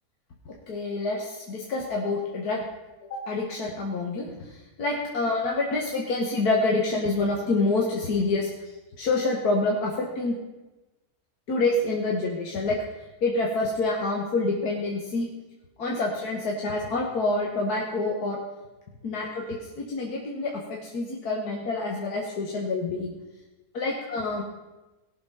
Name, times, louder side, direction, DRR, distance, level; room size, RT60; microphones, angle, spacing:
voice 1, 0.7-2.7 3.1-8.5 9.0-10.4 11.5-12.8 13.2-15.3 15.8-18.4 19.0-23.1 23.7-24.4, left 3 dB, 65° left, -1 dB, 1.8 m, -27 dB
17.5 x 6.5 x 5.6 m, 1.1 s
omnidirectional pair, 1.8 m